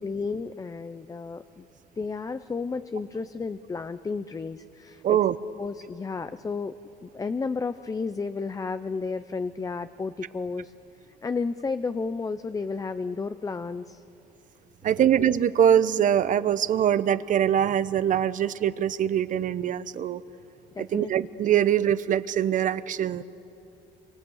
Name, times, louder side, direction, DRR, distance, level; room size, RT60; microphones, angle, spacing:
voice 1, 0.0-1.7 2.0-5.2 5.6-6.7 7.0-10.7 11.2-14.0 15.0-15.1 20.7-21.1, left 4 dB, 20° left, 11 dB, 0.6 m, -32 dB
voice 2, 5.0-5.3 14.8-20.2 20.8-23.2, right 10 dB, 50° right, 15 dB, 0.8 m, -23 dB
26.0 x 24.5 x 8.0 m, 2.8 s
cardioid pair, 110°, 17 cm